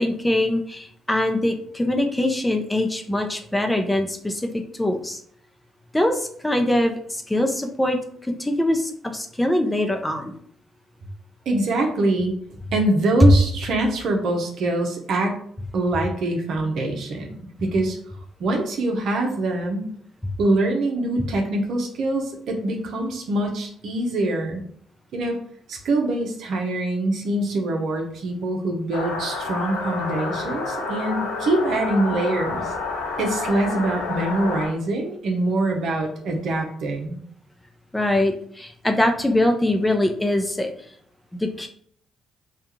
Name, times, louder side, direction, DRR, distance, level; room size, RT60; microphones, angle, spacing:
voice 1, 0.0-5.2 5.9-8.0 8.4-10.4 37.9-40.7 41.4-41.7, left 1 dB, 10° left, 4 dB, 0.6 m, -23 dB
voice 2, 11.5-12.3 12.7-15.4 15.7-18.0 18.4-19.8 20.4-24.6 25.1-25.4 25.7-32.7 33.2-37.2, right 2 dB, 65° right, 2 dB, 0.7 m, -24 dB
sound 1, 28.9-34.7, left 3 dB, 85° left, 0.9 m, -29 dB
3.4 x 2.4 x 2.9 m, 0.62 s
hypercardioid pair, 50°, 0 cm